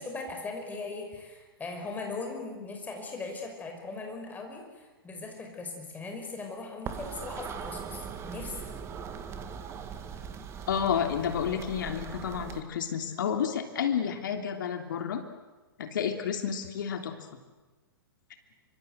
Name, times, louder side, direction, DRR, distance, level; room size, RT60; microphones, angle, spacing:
voice 1, 0.0-8.8, left 3 dB, 15° left, 3 dB, 5.6 m, -39 dB
sound 1, 6.9-12.6, right 7 dB, 20° right, 2.1 m, -40 dB
voice 2, 10.7-15.2 15.8-17.1, left 8 dB, 55° left, 6 dB, 3.1 m, -30 dB
26.5 x 25.0 x 8.1 m, 1.2 s
figure-of-eight pair, 115°, 13 cm